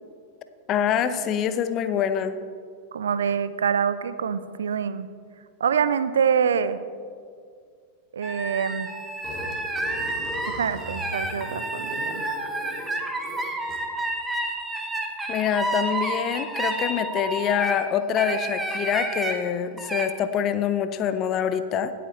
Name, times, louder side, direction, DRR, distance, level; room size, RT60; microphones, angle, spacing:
voice 1, 0.7-2.4 15.3-21.9, left 8 dB, 35° left, 11 dB, 0.7 m, -25 dB
voice 2, 2.9-5.1 5.6-6.8 8.1-8.9 10.5-12.2, right 7 dB, 65° right, 14 dB, 0.4 m, -25 dB
sound 1, 8.2-17.8 18.2-19.4 19.8-20.1, right 2 dB, 10° right, 1.2 m, -30 dB
Burping eructation, 9.2-14.0, left 1 dB, 20° left, 2.4 m, -39 dB
17.5 x 8.0 x 3.2 m, 2.1 s
figure-of-eight pair, 90°, 0 cm